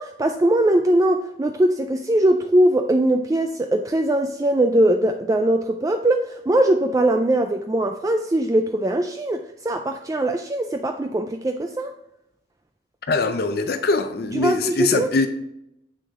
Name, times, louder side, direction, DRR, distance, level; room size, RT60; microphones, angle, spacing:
voice 1, 0.0-11.9 14.3-15.1, right 1 dB, 20° right, 0.3 m, -21 dB
voice 2, 13.1-15.3, left 3 dB, 55° left, 0.5 m, -22 dB
7.8 x 6.3 x 3.6 m
head